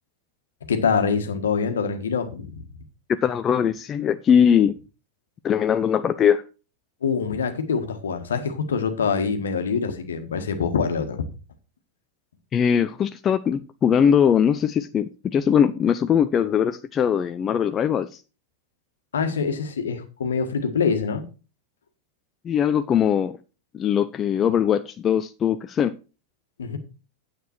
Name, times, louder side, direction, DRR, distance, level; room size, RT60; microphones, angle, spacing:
voice 1, 0.7-2.6 7.0-11.3 19.1-21.2 26.6-26.8, left 5 dB, 65° left, 1.5 m, -25 dB
voice 2, 3.1-4.8 5.4-6.4 12.5-18.2 22.4-23.4 23.7-25.9, left 8 dB, 25° left, 0.5 m, -21 dB
9.4 x 7.7 x 4.4 m
figure-of-eight pair, 90°, 0 cm